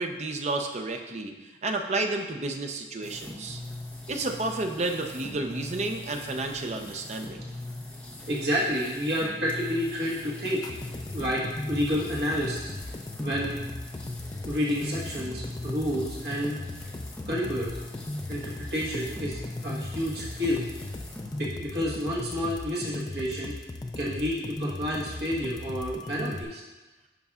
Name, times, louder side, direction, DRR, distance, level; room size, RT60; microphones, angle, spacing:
voice 1, 0.0-1.3 1.6-3.6 4.1-7.4, right 2 dB, 40° right, 4 dB, 0.5 m, -31 dB
sound 1, 3.0-21.4, left 2 dB, 5° left, 0.8 m, -41 dB
voice 2, 8.3-10.7 11.1-12.7 13.2-13.6 14.4-16.5 17.3-17.8 18.3-20.6 21.4-23.5 24.0-26.6, equal, 60° right, -5 dB, 1.3 m, -30 dB
sound 2, 10.4-26.4, left 2 dB, 25° left, 0.4 m, -37 dB
10.5 x 5.2 x 2.4 m, 1.2 s
head